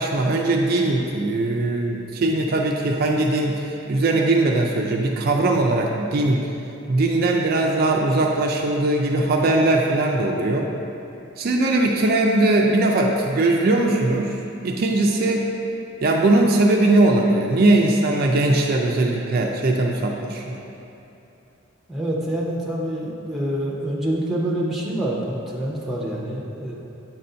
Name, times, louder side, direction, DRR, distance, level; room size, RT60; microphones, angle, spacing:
voice 1, 0.0-6.5 6.9-10.7 11.4-14.4 14.6-15.5 16.0-20.6, right 2 dB, 45° right, 0 dB, 0.4 m, -20 dB
voice 2, 21.9-26.7, right 1 dB, ahead, -4 dB, 0.7 m, -26 dB
7.4 x 2.6 x 5.5 m, 2.9 s
head